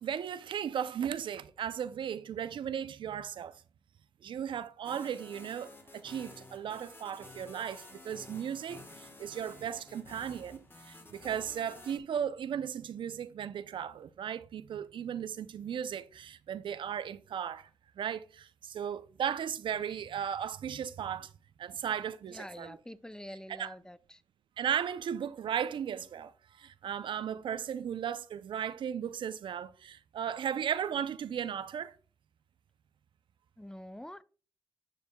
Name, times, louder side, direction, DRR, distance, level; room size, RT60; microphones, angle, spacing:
voice 1, 0.0-3.6 4.2-17.7 18.0-21.3 21.6-22.8 23.5-23.7 24.6-32.0, right 8 dB, 70° right, 0.5 m, -36 dB
sound 1, 4.8-12.0, left 2 dB, 25° left, 2.0 m, -52 dB
voice 2, 22.3-24.2 33.6-34.2, equal, 10° left, 0.5 m, -46 dB
10.5 x 6.3 x 2.3 m
supercardioid pair, 50°, 9 cm